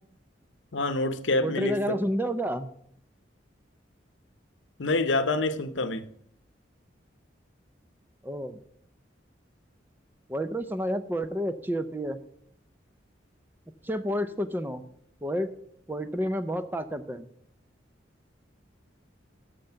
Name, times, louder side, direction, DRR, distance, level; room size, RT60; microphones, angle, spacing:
voice 1, 0.7-2.0 4.8-6.1, left 2 dB, 75° left, 12 dB, 0.8 m, -27 dB
voice 2, 1.4-2.7 8.2-8.6 10.3-12.2 13.8-14.8 15.2-15.5 15.9-17.3, equal, 10° right, 10 dB, 0.5 m, -30 dB
12.0 x 6.6 x 5.6 m, 0.68 s
head